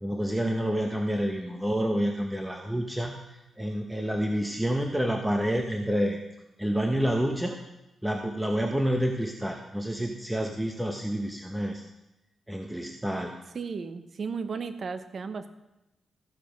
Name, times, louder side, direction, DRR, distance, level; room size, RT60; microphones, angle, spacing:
voice 1, 0.0-3.2 3.6-6.2 6.6-7.6 8.0-11.8 12.5-13.3, equal, 5° right, 2 dB, 1.0 m, -28 dB
voice 2, 13.5-15.5, right 5 dB, 55° right, 10 dB, 0.9 m, -34 dB
14.5 x 6.9 x 5.2 m, 0.95 s
cardioid pair, 85°, 0 cm